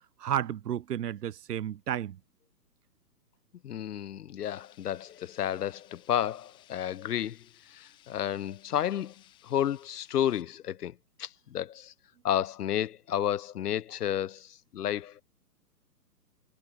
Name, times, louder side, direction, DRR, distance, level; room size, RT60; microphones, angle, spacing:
voice 1, 0.2-2.2, right 10 dB, 80° right, 0.6 m, -32 dB
voice 2, 3.6-7.4 7.7-9.1 9.4-11.9 12.2-15.2, left 10 dB, 75° left, 0.6 m, -31 dB
sound 1, 4.4-10.4, left 15 dB, 10° left, 0.8 m, -60 dB
figure-of-eight pair, 130°, 48 cm